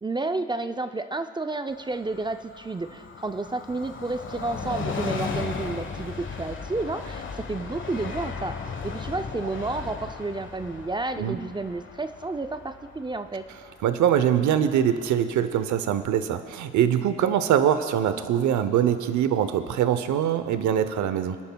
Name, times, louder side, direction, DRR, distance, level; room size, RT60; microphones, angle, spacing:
voice 1, 0.0-8.6 8.8-13.5, right 2 dB, 15° right, 9 dB, 0.4 m, -31 dB
Train, 1.7-15.0 15.3-15.4, left 5 dB, 40° left, 1.2 m, -36 dB
voice 2, 13.8-21.4, right 9 dB, 70° right, 11 dB, 0.8 m, -23 dB
26.5 x 10.5 x 2.3 m, 2.2 s
cardioid pair, 90°, 30 cm